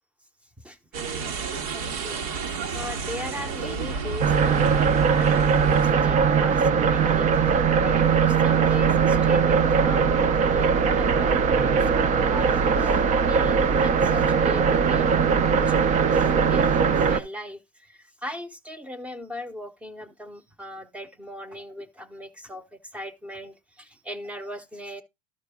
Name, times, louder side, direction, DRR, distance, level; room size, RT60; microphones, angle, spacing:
sound 1, 0.9-5.9, right 5 dB, 75° right, 1.7 m, -31 dB
voice 1, 1.2-25.0, left 1 dB, 5° right, 0.9 m, -39 dB
sound 2, 4.2-17.2, right 6 dB, 40° right, 0.8 m, -20 dB
12.5 x 4.7 x 3.6 m
supercardioid pair, 120°, 20 cm